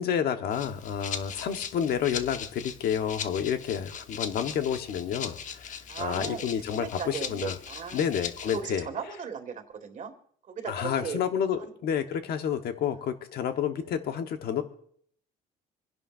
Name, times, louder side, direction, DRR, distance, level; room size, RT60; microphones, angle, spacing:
voice 1, 0.0-7.5 7.9-8.8 10.7-14.6, left 8 dB, 65° left, 7 dB, 1.2 m, -30 dB
Rattle (instrument), 0.5-8.6, left 7 dB, 50° left, 0.9 m, -39 dB
voice 2, 5.9-8.0 8.5-10.1 10.4-11.2 11.6-11.7, right 6 dB, 45° right, 6 dB, 1.9 m, -37 dB
27.0 x 11.0 x 2.6 m, 0.63 s
cardioid pair, 110°, 17 cm